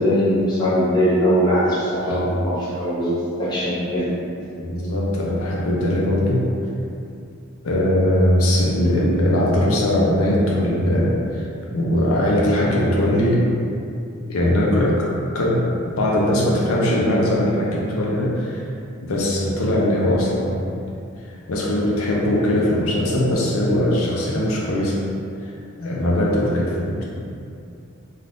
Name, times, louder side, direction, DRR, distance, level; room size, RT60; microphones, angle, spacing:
voice 1, 0.0-3.1 3.4-4.1, equal, 20° left, -9 dB, 0.7 m, -20 dB
voice 2, 2.0-2.4 4.6-6.5 7.6-11.5 11.7-13.5 14.3-15.1 15.3-18.6 19.0-20.6 21.5-25.0 25.8-27.0, left 1 dB, 90° left, -4 dB, 0.5 m, -20 dB
2.5 x 2.3 x 3.4 m, 2.5 s
head